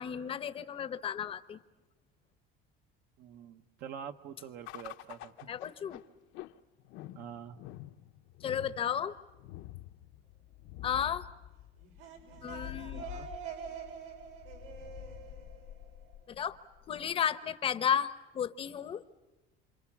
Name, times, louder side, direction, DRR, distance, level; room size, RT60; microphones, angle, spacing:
voice 1, 0.0-1.6 5.5-6.0 8.4-9.2 10.8-11.2 12.4-13.1 16.3-16.6 16.9-19.0, left 8 dB, 25° left, 13 dB, 0.9 m, -33 dB
voice 2, 3.2-5.5 7.1-7.6 12.3-12.5 12.9-13.3, right 8 dB, 50° right, 6 dB, 1.2 m, -46 dB
sound 1, 4.7-17.3, left 15 dB, 65° left, 1.0 m, -48 dB
sound 2, 11.8-16.5, right 7 dB, 85° right, 6.6 m, -46 dB
28.0 x 27.0 x 7.3 m, 1.1 s
cardioid pair, 170°, 21 cm